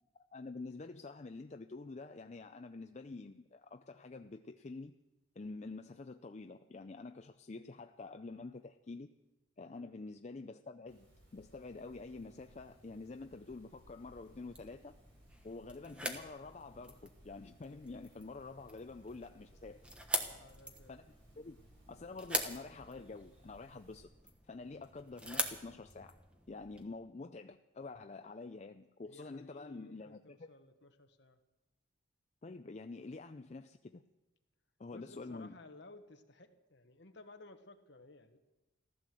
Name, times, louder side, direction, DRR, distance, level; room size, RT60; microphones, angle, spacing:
voice 1, 0.3-5.0 5.4-9.1 9.6-11.1 11.3-14.9 15.4-19.8 20.9-21.0 21.4-21.6 21.9-24.1 24.5-26.2 26.5-30.5 32.4-34.0 34.8-35.6, left 3 dB, 35° left, 7 dB, 0.4 m, -47 dB
sound 1, 10.9-24.0, equal, 60° right, 7.2 m, -63 dB
sound 2, 14.0-26.8, equal, 5° right, 1.1 m, -44 dB
voice 2, 20.2-20.9 29.1-31.4 34.9-38.4, left 2 dB, 55° left, 7 dB, 1.3 m, -57 dB
15.0 x 12.5 x 7.6 m, 1.0 s
head